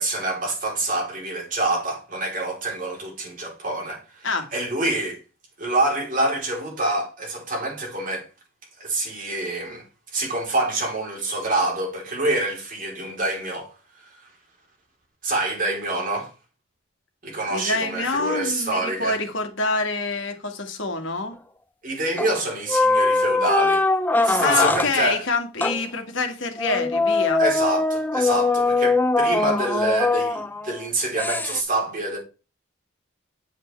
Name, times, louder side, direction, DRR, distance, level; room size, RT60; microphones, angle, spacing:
voice 1, 0.0-5.2 5.6-8.3 8.8-9.8 10.1-13.7 15.2-16.3 17.2-19.2 21.8-23.8 24.2-25.2 27.4-32.2, right 2 dB, 40° right, 3.5 m, -26 dB
voice 2, 17.5-21.3 24.2-27.4, left 3 dB, 65° left, 1.9 m, -26 dB
sound 1, 22.2-22.4 22.7-24.9 25.6-25.8 26.6-30.7 31.2-31.6, left 3 dB, 10° left, 0.5 m, -21 dB
8.1 x 7.5 x 3.3 m
head